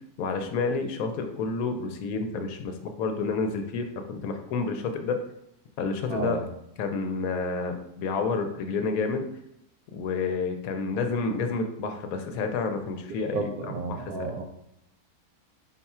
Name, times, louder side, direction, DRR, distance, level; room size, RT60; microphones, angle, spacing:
voice 1, 0.2-5.2 5.8-6.4 6.8-9.3 9.9-14.0, left 4 dB, 70° left, 5 dB, 1.0 m, -29 dB
voice 2, 6.1-6.5 13.3-14.4, right 4 dB, 75° right, 1 dB, 1.0 m, -32 dB
4.2 x 2.3 x 4.2 m, 0.82 s
omnidirectional pair, 1.6 m